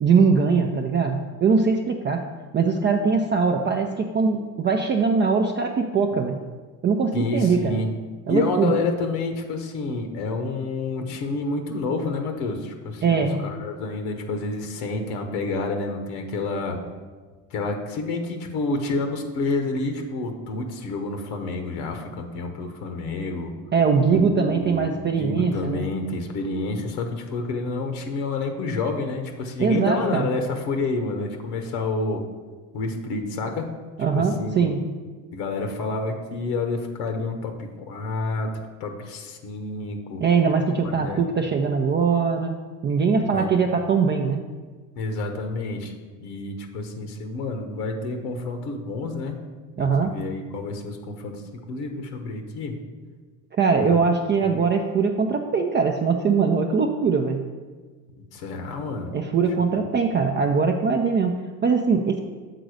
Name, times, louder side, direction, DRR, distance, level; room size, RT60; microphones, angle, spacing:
voice 1, 0.0-2.2 2.5-6.4 6.8-7.8 8.3-8.7 13.0-13.4 23.7-25.8 29.6-30.3 34.0-34.8 40.2-44.4 49.8-50.1 53.6-57.4 59.1-62.2, right 5 dB, 25° right, 2 dB, 0.5 m, -21 dB
voice 2, 7.1-7.9 8.3-16.8 17.5-23.5 24.1-32.2 32.7-33.7 34.1-34.7 35.3-38.5 38.8-40.2 40.8-41.2 43.3-43.5 44.9-45.9 46.2-49.4 49.8-52.8 53.8-54.0 58.3-59.1 59.6-59.8 60.1-60.2, left 3 dB, 70° left, 5 dB, 1.0 m, -29 dB
6.7 x 3.9 x 6.2 m, 1.4 s
hypercardioid pair, 75°, 48 cm